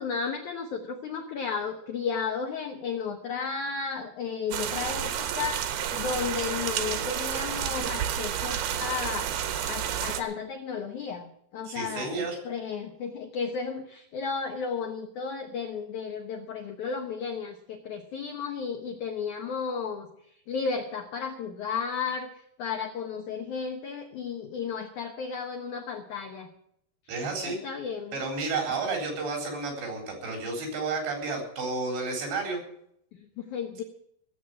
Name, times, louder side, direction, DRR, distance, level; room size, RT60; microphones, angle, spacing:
voice 1, 0.0-20.1 20.5-26.5 27.4-28.2 33.1-33.8, left 5 dB, 80° left, 4 dB, 1.7 m, -34 dB
sound 1, 4.5-10.2, right 9 dB, 70° right, 2.9 m, -30 dB
voice 2, 11.7-12.4 27.1-27.6 28.1-32.6, right 3 dB, 90° right, 2 dB, 6.2 m, -31 dB
16.0 x 7.8 x 8.5 m, 0.73 s
omnidirectional pair, 4.9 m